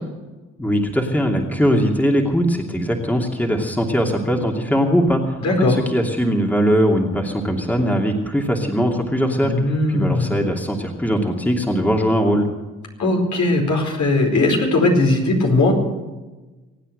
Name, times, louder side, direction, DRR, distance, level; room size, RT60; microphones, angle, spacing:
voice 1, 0.6-5.4 5.9-12.5, equal, 5° left, 1 dB, 2.7 m, -20 dB
voice 2, 5.4-5.8 9.4-10.4 13.0-15.7, left 2 dB, 60° left, 1 dB, 4.7 m, -18 dB
23.5 x 9.0 x 6.6 m, 1.2 s
supercardioid pair, 60°, 32 cm